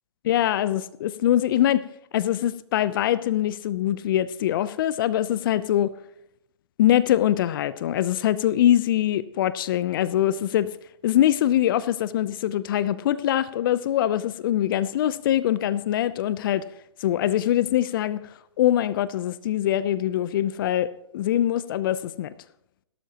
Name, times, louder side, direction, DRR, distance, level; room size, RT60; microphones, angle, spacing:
voice 1, 0.2-1.9 2.1-5.9 6.8-10.7 11.0-16.7 17.0-18.2 18.6-22.3, left 12 dB, 45° left, 16 dB, 0.7 m, -23 dB
17.5 x 12.5 x 2.9 m, 0.80 s
figure-of-eight pair, 125°, 16 cm